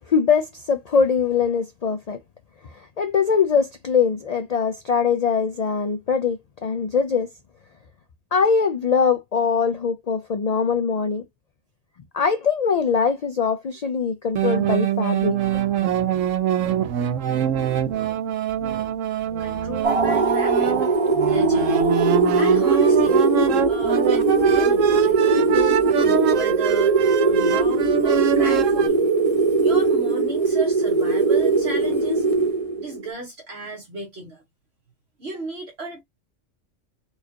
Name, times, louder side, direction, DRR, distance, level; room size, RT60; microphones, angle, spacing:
voice 1, 0.1-2.2 3.0-7.3 8.3-11.2 12.1-15.6, left 6 dB, 80° left, 0.3 m, -22 dB
crazy accordion, 14.4-28.9, right 10 dB, 85° right, 1.0 m, -24 dB
voice 2, 19.4-20.9 21.2-22.0 22.4-23.2 23.7-29.1 29.6-32.2 32.8-34.4 35.2-36.0, right 2 dB, 60° right, 1.4 m, -35 dB
sound 1, 19.8-33.1, right 3 dB, 30° right, 0.8 m, -20 dB
4.4 x 2.4 x 2.8 m
omnidirectional pair, 1.3 m